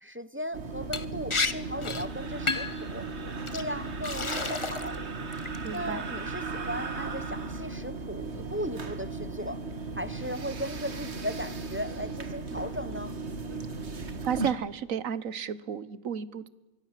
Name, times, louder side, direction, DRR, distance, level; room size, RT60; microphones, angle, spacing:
voice 1, 0.0-3.1 3.5-5.0 5.7-9.6 9.9-13.2, equal, 10° right, 14 dB, 0.8 m, -37 dB
sound 1, 0.5-14.5, right 3 dB, 50° right, 2.0 m, -36 dB
Liquid, 0.9-1.0 1.3-1.5 1.8-2.1 2.5-2.8 3.5-3.6 4.0-4.9 5.3-5.8, left 3 dB, 25° left, 1.0 m, -30 dB
voice 2, 5.6-6.1 14.3-16.5, right 8 dB, 70° right, 18 dB, 1.5 m, -32 dB
25.5 x 24.0 x 7.5 m, 1.1 s
omnidirectional pair, 1.5 m